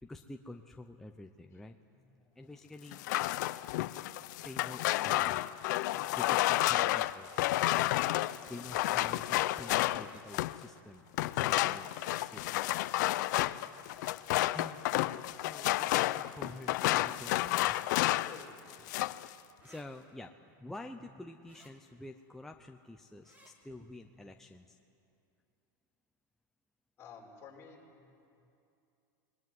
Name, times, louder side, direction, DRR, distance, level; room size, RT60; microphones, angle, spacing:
voice 1, 0.0-3.0 4.4-5.4 5.8-7.3 8.5-11.9 12.2-12.7 13.7-13.9 14.5-15.1 15.4-17.8 19.6-24.8, left 2 dB, 5° left, 3 dB, 0.7 m, -49 dB
voice 2, 1.1-1.6 18.1-18.5 27.0-27.8 28.1-28.2, left 6 dB, 25° left, -2 dB, 5.5 m, -52 dB
sound 1, 2.9-10.6 11.1-18.4 18.7-19.3, left 17 dB, 60° left, 0.7 m, -31 dB
sound 2, 9.9-10.2 11.9-12.2 13.8-14.2 15.8-16.1 17.6-17.9 19.6-19.9 21.4-21.7 23.2-23.5, equal, 15° right, 3.3 m, -59 dB
25.0 x 21.5 x 9.6 m, 2.7 s
supercardioid pair, 150°, 11 cm